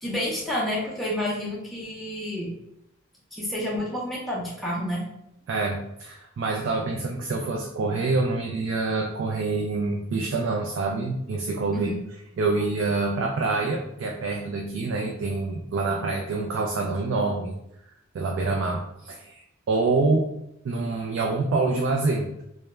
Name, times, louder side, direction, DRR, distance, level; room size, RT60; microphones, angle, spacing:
voice 1, 0.0-2.5 3.3-5.1 11.7-12.0, left 1 dB, ahead, -7 dB, 0.4 m, -29 dB
voice 2, 5.5-11.9 12.4-17.5 18.1-20.3 20.6-22.4, right 3 dB, 65° right, 0 dB, 0.3 m, -26 dB
2.2 x 2.1 x 3.0 m, 0.80 s
head